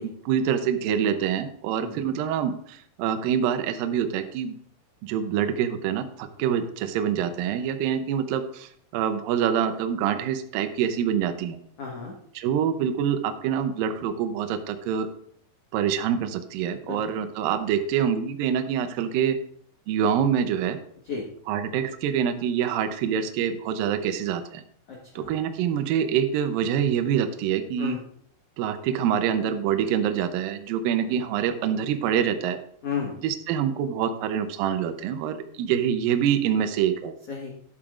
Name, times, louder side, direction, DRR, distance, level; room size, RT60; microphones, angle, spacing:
voice 1, 0.0-4.6 5.0-11.6 12.4-15.1 15.7-19.4 19.9-20.8 21.5-24.6 25.2-28.0 28.6-32.6 33.2-37.1, right 8 dB, 85° right, 8 dB, 2.0 m, -26 dB
voice 2, 11.8-12.1 16.8-17.2 21.0-21.2 24.9-25.3 27.8-28.0 31.1-31.2 32.8-33.1 37.3-37.6, left 6 dB, 80° left, -2 dB, 1.3 m, -33 dB
12.0 x 8.6 x 2.4 m, 0.65 s
omnidirectional pair, 4.9 m